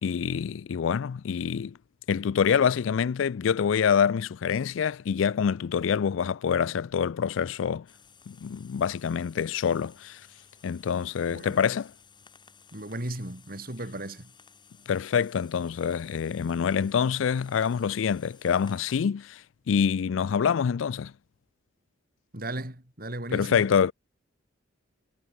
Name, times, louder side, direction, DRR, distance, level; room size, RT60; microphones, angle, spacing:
voice 1, 0.0-1.8 2.1-7.9 8.3-10.2 10.6-11.9 14.9-21.1 23.3-23.9, left 7 dB, 85° left, 0.4 m, -26 dB
sound 1, 7.9-19.1, left 6 dB, 25° left, 5.2 m, -56 dB
voice 2, 12.7-14.3 22.3-23.6, right 1 dB, 50° right, 4.3 m, -36 dB
head